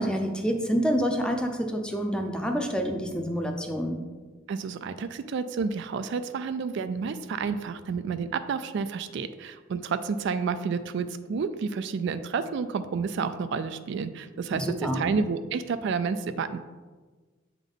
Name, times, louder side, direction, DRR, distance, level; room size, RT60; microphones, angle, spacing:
voice 1, 0.0-4.0 14.5-15.1, equal, 5° left, 3 dB, 0.5 m, -27 dB
voice 2, 4.5-16.6, right 5 dB, 60° right, 11 dB, 0.3 m, -30 dB
8.1 x 3.6 x 3.8 m, 1.4 s
head